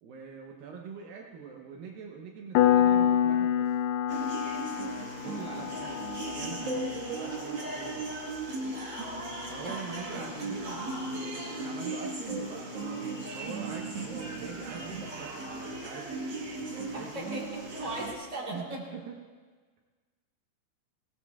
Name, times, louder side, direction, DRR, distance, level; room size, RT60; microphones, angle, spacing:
voice 1, 0.0-3.8 4.8-8.2 9.5-17.3 17.8-18.0 18.5-19.2, right 5 dB, 75° right, 0 dB, 2.4 m, -44 dB
Piano, 2.6-12.9, left 10 dB, 85° left, 2.5 m, -30 dB
sound 1, 4.1-18.1, right 3 dB, 55° right, 1.2 m, -37 dB
voice 2, 5.3-5.7 9.6-9.7 10.1-10.2 16.9-18.8, right 1 dB, 10° right, -4 dB, 2.5 m, -39 dB
21.0 x 18.0 x 2.4 m, 1.5 s
omnidirectional pair, 4.5 m